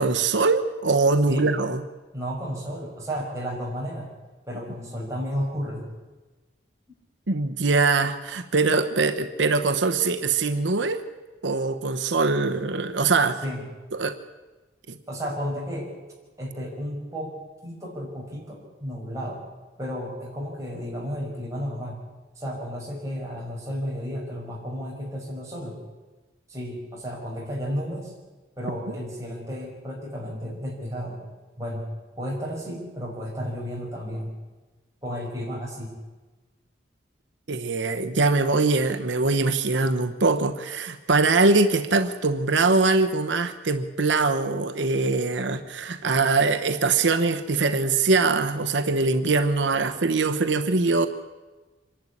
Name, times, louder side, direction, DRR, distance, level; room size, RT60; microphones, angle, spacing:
voice 1, 0.0-1.8 7.3-11.0 11.4-13.4 13.9-14.2 14.9-15.0 37.5-51.1, right 3 dB, 85° right, 7 dB, 1.0 m, -22 dB
voice 2, 2.1-4.1 4.5-5.9 13.4-13.6 15.1-15.9 16.4-17.3 17.6-19.4 19.8-22.0 22.4-25.8 26.5-28.1 28.6-31.2 31.6-31.8 32.2-34.3 35.0-36.0, equal, 15° right, -3 dB, 5.9 m, -32 dB
25.5 x 11.5 x 9.9 m, 1.2 s
head